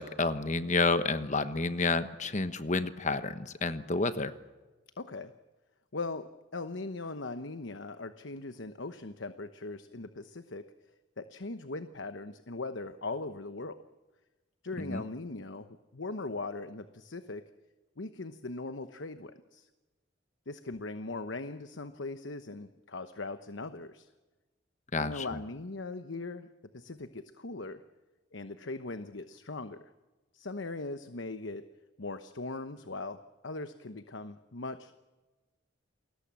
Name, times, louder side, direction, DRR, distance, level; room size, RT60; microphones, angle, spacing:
voice 1, 0.0-4.3 14.8-15.0 24.9-25.2, left 3 dB, 40° left, 11 dB, 1.2 m, -30 dB
voice 2, 5.0-5.3 5.9-10.7 11.2-13.8 14.6-17.4 18.0-19.7 20.5-24.1 25.0-26.5 26.7-27.8 28.3-29.9 30.3-31.6 32.0-35.0, left 3 dB, 70° left, 10 dB, 1.1 m, -40 dB
29.0 x 21.0 x 7.6 m, 1.2 s
head